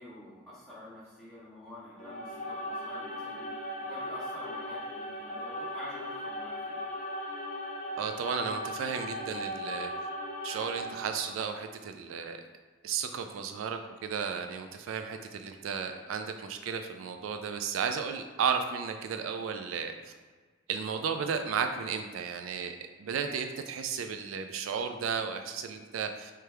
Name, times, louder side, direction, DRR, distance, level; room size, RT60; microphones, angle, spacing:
voice 1, 0.0-3.5 3.8-6.8, left 1 dB, 5° left, -13 dB, 1.2 m, -48 dB
sound 1, 1.9-11.4, left 1 dB, 35° left, 0.6 m, -38 dB
voice 2, 8.0-9.9 10.4-12.4 12.8-20.1 20.7-26.3, right 6 dB, 90° right, 6 dB, 0.3 m, -34 dB
3.4 x 3.3 x 4.5 m, 1.4 s
head